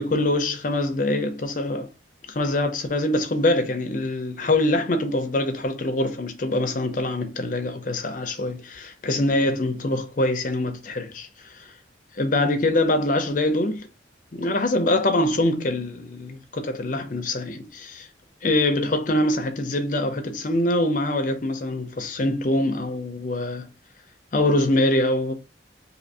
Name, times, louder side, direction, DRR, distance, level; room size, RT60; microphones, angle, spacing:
voice 1, 0.0-1.9 2.3-11.3 12.2-13.9 14.3-18.1 18.4-23.7 24.3-25.3, left 1 dB, 45° left, 0.6 m, -24 dB
2.7 x 2.6 x 4.0 m
head